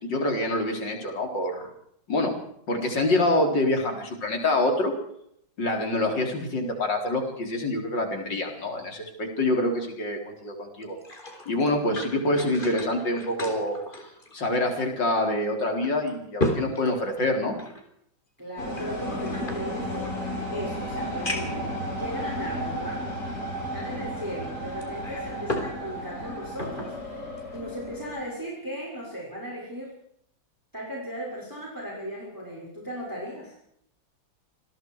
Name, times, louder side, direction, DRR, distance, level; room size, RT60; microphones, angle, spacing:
voice 1, 0.0-1.7 2.1-2.3 2.7-4.9 5.6-11.0 11.5-14.0 14.3-17.6 23.9-24.0, left 1 dB, 65° left, 3 dB, 4.6 m, -26 dB
sound 1, 10.8-14.8 15.2-15.3 15.8-17.8 18.7-20.1 20.7-20.8 21.2-21.7 22.4-22.5 24.8-25.8 26.1-26.9 27.4-27.6, left 2 dB, 25° left, 3.8 m, -34 dB
voice 2, 18.4-23.0 23.6-29.9 30.7-33.5, equal, 10° right, -3 dB, 6.2 m, -37 dB
sound 2, 18.6-28.2, equal, 50° left, 6.7 m, -34 dB
28.0 x 20.5 x 4.8 m, 0.71 s
omnidirectional pair, 2.1 m